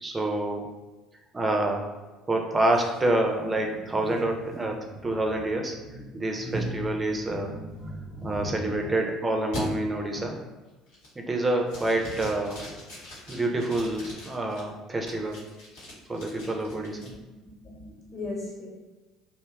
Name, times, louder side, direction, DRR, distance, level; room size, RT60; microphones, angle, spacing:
voice 1, 0.0-0.7 1.3-1.9 2.3-5.8 6.1-7.5 8.2-10.4 11.2-12.6 13.3-15.4 16.1-17.1, right 2 dB, 20° right, 2 dB, 0.4 m, -27 dB
sound 1, 2.7-9.0 9.5-9.6 10.1-10.5 10.9-11.3 11.7-14.6 15.1-17.1, equal, 75° left, 0.8 m, -40 dB
voice 2, 17.6-18.7, left 2 dB, 45° left, -5 dB, 0.9 m, -38 dB
2.6 x 2.2 x 2.3 m, 1.2 s
hypercardioid pair, 60°, 0 cm